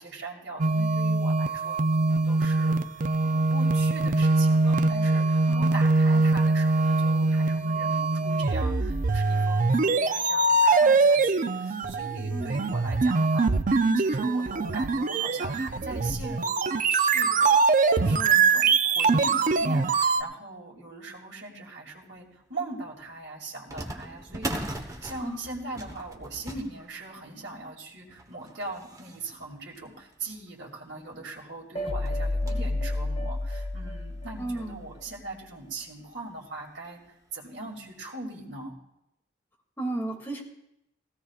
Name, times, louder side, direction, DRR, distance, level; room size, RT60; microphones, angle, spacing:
voice 1, 0.0-17.6 17.9-37.0 37.3-38.8, right 2 dB, 75° right, 0 dB, 2.6 m, -40 dB
sound 1, 0.6-20.2, right 3 dB, 45° right, 0.5 m, -23 dB
voice 2, 5.5-5.8 12.3-12.6 18.0-18.4 25.2-25.4 34.4-34.9 39.8-40.4, right 2 dB, 15° left, -1 dB, 2.4 m, -34 dB
sound 2, 22.2-22.3 23.7-30.6 31.2-31.3 31.5-31.6 32.0-32.8 33.3-33.4 34.2-34.3 34.7-34.8 36.2-36.4 36.9-37.0 37.6-37.7, right 1 dB, 20° right, 1.2 m, -40 dB
sound 3, 31.8-34.9, left 2 dB, 30° left, 1.0 m, -30 dB
18.0 x 16.5 x 2.4 m, 0.83 s
head